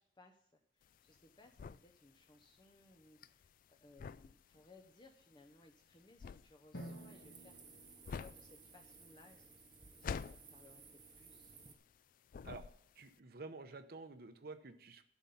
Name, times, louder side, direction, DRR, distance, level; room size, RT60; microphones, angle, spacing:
voice 1, 0.0-9.5 9.9-11.5, left 2 dB, 25° left, 2 dB, 0.7 m, -64 dB
sound 1, 0.8-12.0 12.3-13.1, left 6 dB, 50° left, 0.3 m, -48 dB
Drum, 6.7-9.2, equal, 75° left, 1.6 m, -53 dB
sound 2, 6.7-11.7, right 5 dB, 25° right, 0.9 m, -59 dB
voice 2, 12.9-15.0, right 3 dB, 60° right, 9 dB, 0.8 m, -50 dB
11.5 x 5.3 x 7.0 m, 0.68 s
head